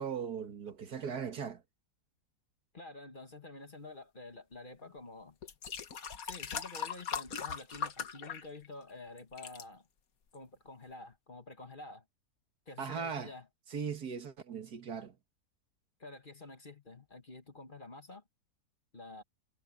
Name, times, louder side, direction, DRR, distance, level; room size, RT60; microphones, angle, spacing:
voice 1, 0.0-1.6 12.8-13.3 13.7-15.1, right 6 dB, 75° right, 2.2 m, -38 dB
voice 2, 2.7-5.4 6.2-9.9 10.3-12.0 12.7-13.5 16.0-18.2 18.9-19.2, left 2 dB, 30° left, 1.6 m, -49 dB
sound 1, 4.8-4.9 5.4-8.9 9.2-9.6 10.3-10.4, left 7 dB, 60° left, 1.7 m, -40 dB
omnidirectional pair, 1.7 m